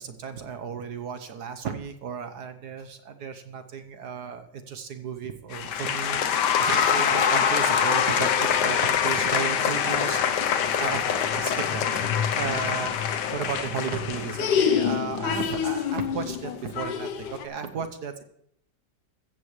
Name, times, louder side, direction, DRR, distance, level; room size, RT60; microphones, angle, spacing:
voice 1, 0.0-12.9 13.3-18.2, right 6 dB, 65° right, 8 dB, 1.4 m, -35 dB
sound 1, 5.5-17.4, left 8 dB, 70° left, 1.4 m, -25 dB
15.0 x 14.5 x 3.2 m, 0.71 s
omnidirectional pair, 2.0 m